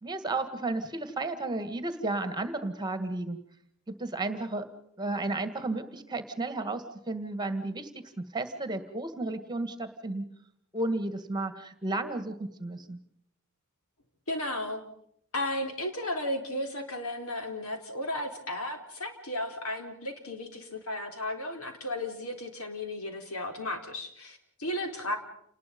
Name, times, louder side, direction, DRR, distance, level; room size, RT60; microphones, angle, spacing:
voice 1, 0.0-3.4 3.9-4.7 5.0-10.2 10.7-13.0, right 2 dB, 20° right, 10 dB, 1.9 m, -33 dB
voice 2, 14.3-14.8 15.3-25.2, left 1 dB, 85° left, 5 dB, 4.1 m, -34 dB
29.0 x 20.0 x 5.4 m, 0.70 s
head